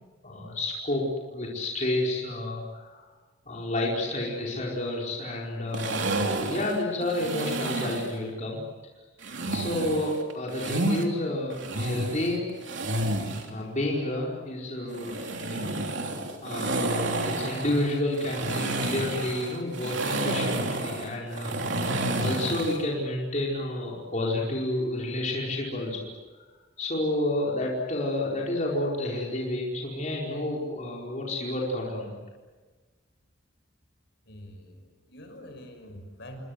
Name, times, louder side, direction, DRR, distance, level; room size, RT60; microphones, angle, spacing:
voice 1, 0.2-1.0 1.3-3.1 3.5-6.2 6.5-8.6 9.5-12.5 13.4-15.8 16.4-26.1 26.8-32.2, left 1 dB, 40° left, -3 dB, 4.7 m, -30 dB
sound 1, 5.7-8.1 9.2-11.0 11.5-13.5 14.9-22.8, right 2 dB, 65° right, 3.4 m, -30 dB
voice 2, 34.3-36.4, equal, 60° left, 6 dB, 6.0 m, -45 dB
28.5 x 24.5 x 8.0 m, 1.4 s
head